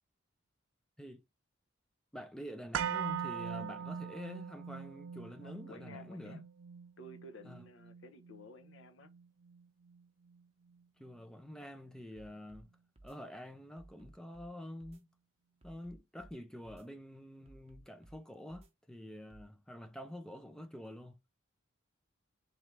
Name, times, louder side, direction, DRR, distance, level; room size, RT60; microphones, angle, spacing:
voice 1, 2.1-6.4 7.4-7.6 11.0-12.7 13.0-15.1 15.6-21.2, equal, 5° left, 0.4 m, -47 dB
sound 1, 2.7-10.8 11.1-11.2, right 8 dB, 80° right, 0.4 m, -42 dB
voice 2, 5.4-6.4 7.0-9.1, left 1 dB, 65° left, 0.8 m, -53 dB
sound 2, 12.2-12.7 13.0-13.2 13.8-14.5 14.8-15.0 15.6-16.3 16.7-16.9 17.5-18.2 18.5-18.7 19.3-19.5, right 1 dB, 30° right, 0.8 m, -57 dB
4.0 x 3.2 x 3.2 m
head